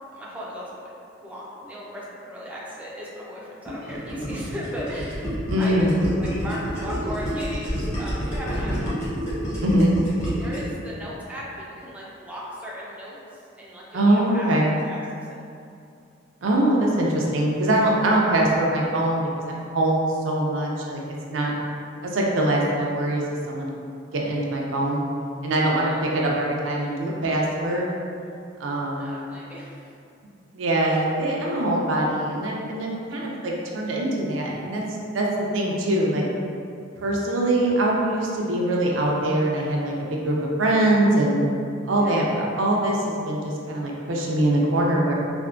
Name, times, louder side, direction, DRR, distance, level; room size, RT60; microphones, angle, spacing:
voice 1, 0.1-0.9 1.2-9.2 10.4-15.4 25.6-26.0 28.9-29.9 30.9-31.1 41.8-42.3, equal, 10° right, -6 dB, 0.4 m, -37 dB
Gurgling, 3.7-10.7, equal, 15° left, 0.8 m, -29 dB
voice 2, 5.5-5.9 9.6-9.9 13.9-14.7 16.4-21.0 21.3-21.5 22.0-23.7 24.1-25.0 25.4-27.9 28.6-29.2 30.5-34.8 35.1-35.3 35.5-36.2 37.0-41.4 41.9-45.1, right 1 dB, 85° right, -2 dB, 0.5 m, -23 dB
3.4 x 2.1 x 2.4 m, 2.5 s
head